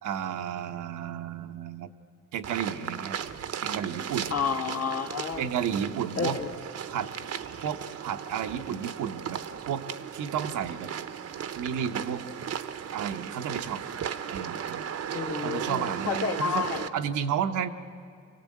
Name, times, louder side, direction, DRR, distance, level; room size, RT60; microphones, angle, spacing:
voice 1, 0.0-1.9 2.3-3.2 3.6-4.3 5.4-6.4 6.9-7.1 7.6-9.8 10.1-10.9 11.5-12.2 12.9-13.8 14.3-14.8 15.4-16.6 16.9-17.7, right 8 dB, 80° right, 7 dB, 1.0 m, -32 dB
sound 1, 2.4-16.9, right 8 dB, 55° right, 0.9 m, -36 dB
voice 2, 4.3-5.4 6.2-6.5 15.1-16.8, left 6 dB, 55° left, 4 dB, 1.9 m, -30 dB
24.5 x 17.0 x 8.5 m, 2.3 s
cardioid pair, 90°, 30 cm